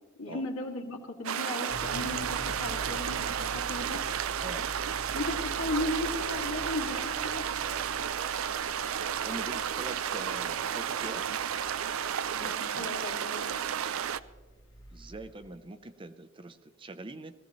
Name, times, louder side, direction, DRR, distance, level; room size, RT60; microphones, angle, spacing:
voice 1, 0.2-4.0 5.1-7.4 12.4-13.6, left 2 dB, 90° left, 0 dB, 2.1 m, -36 dB
sound 1, 1.2-14.2, right 8 dB, 80° right, 0.4 m, -32 dB
sound 2, 1.7-15.5, right 1 dB, 65° left, 1.7 m, -46 dB
voice 2, 9.2-11.2 14.9-17.3, right 2 dB, 25° right, 9 dB, 0.6 m, -43 dB
20.5 x 15.5 x 3.1 m, 1.4 s
head